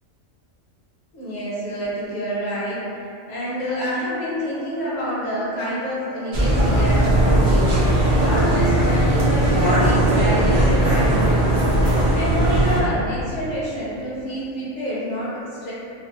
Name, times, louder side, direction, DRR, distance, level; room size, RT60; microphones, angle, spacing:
voice 1, 1.1-2.9 3.3-7.8 8.2-11.6 12.1-15.7, equal, 45° left, -9 dB, 0.6 m, -28 dB
sound 1, 6.3-12.8, right 1 dB, 50° right, 0.4 m, -18 dB
2.5 x 2.1 x 2.5 m, 2.6 s
omnidirectional pair, 1.3 m